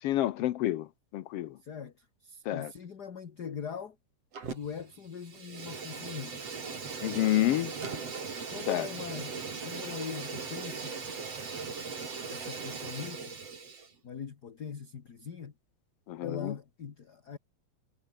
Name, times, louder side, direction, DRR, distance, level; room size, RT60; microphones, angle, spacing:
voice 1, 0.0-0.9 1.1-1.6 2.4-2.7 7.0-7.7 8.7-8.9 16.1-16.5, left 14 dB, 70° left, 1.5 m, -29 dB
voice 2, 1.6-4.0 4.5-6.4 8.5-9.3 9.6-11.0 12.3-13.4 14.0-15.5 16.2-17.4, left 7 dB, 40° left, 1.8 m, -41 dB
Fire, 4.3-4.9 5.2-13.9, right 5 dB, 55° right, 5.0 m, -39 dB
omnidirectional pair, 3.4 m